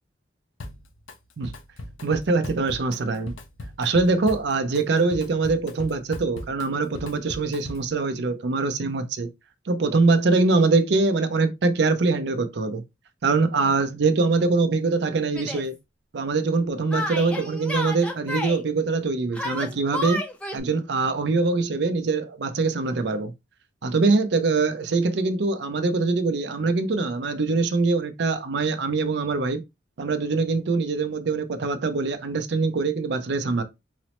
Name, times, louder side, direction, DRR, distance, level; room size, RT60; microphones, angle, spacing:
Drum kit, 0.6-1.2 1.4-8.0, left 2 dB, 90° left, 0.6 m, -39 dB
voice 1, 2.0-3.3 3.8-9.3 9.7-12.8 13.2-15.8 16.1-20.2 20.5-23.3 23.8-29.6 30.0-33.6, right 3 dB, 60° right, 0.5 m, -23 dB
Yell, 15.3-15.6 16.9-18.6 19.3-20.6, left 1 dB, 5° left, 0.5 m, -31 dB
4.0 x 2.0 x 2.9 m
head